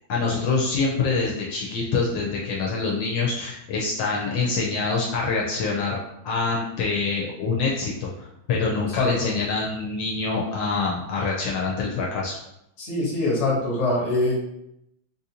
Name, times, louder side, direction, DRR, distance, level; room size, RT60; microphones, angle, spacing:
voice 1, 0.1-6.0 6.2-12.4, left 4 dB, 75° left, -3 dB, 1.2 m, -25 dB
voice 2, 8.8-9.4 12.8-14.3, left 2 dB, 45° left, -3 dB, 1.1 m, -24 dB
3.9 x 2.5 x 2.8 m, 0.82 s
omnidirectional pair, 2.2 m